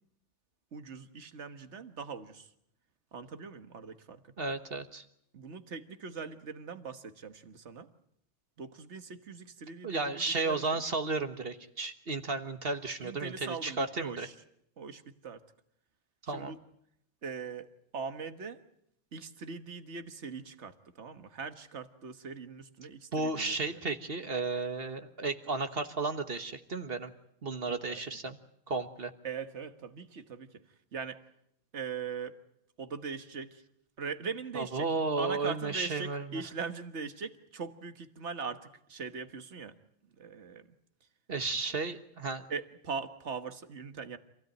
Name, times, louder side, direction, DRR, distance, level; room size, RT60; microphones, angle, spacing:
voice 1, 0.7-2.5 3.1-4.4 5.3-7.9 8.6-10.8 13.0-14.4 14.8-15.4 16.3-16.6 17.2-18.6 19.1-23.8 27.7-28.0 29.2-30.6 30.9-31.2 31.7-32.4 32.8-33.6 34.0-34.9 35.2-39.8 40.2-40.7 42.5-44.2, right 5 dB, 70° right, 10 dB, 1.7 m, -41 dB
voice 2, 4.4-5.0 9.8-14.3 16.3-16.5 23.1-27.1 27.4-28.4 28.7-29.1 34.5-36.4 41.3-42.4, right 3 dB, 55° right, 8 dB, 1.6 m, -33 dB
27.0 x 16.5 x 9.2 m, 0.76 s
omnidirectional pair, 1.2 m